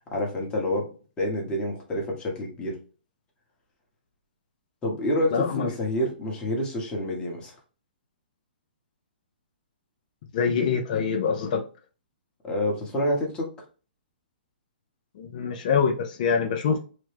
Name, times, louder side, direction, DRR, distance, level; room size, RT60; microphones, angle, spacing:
voice 1, 0.1-0.9 1.2-2.8 4.8-7.5 12.4-13.5, left 1 dB, 15° left, -1 dB, 1.0 m, -28 dB
voice 2, 5.3-5.7 10.3-11.6 15.2-16.8, left 6 dB, 50° left, 3 dB, 0.5 m, -25 dB
3.0 x 2.1 x 3.3 m, 0.37 s
hypercardioid pair, 140°, 6 cm